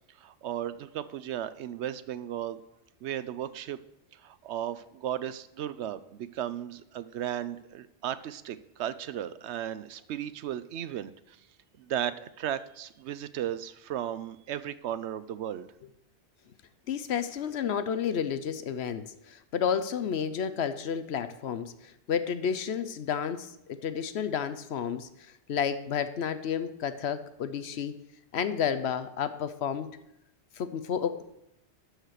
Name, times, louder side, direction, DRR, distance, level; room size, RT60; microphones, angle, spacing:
voice 1, 0.2-2.6 3.0-3.8 4.1-11.4 11.8-15.7, right 11 dB, 80° right, 14 dB, 0.9 m, -35 dB
voice 2, 16.9-28.0 28.3-29.9 30.6-31.2, left 7 dB, 75° left, 11 dB, 1.0 m, -31 dB
12.5 x 4.9 x 6.5 m, 0.84 s
omnidirectional pair, 1.1 m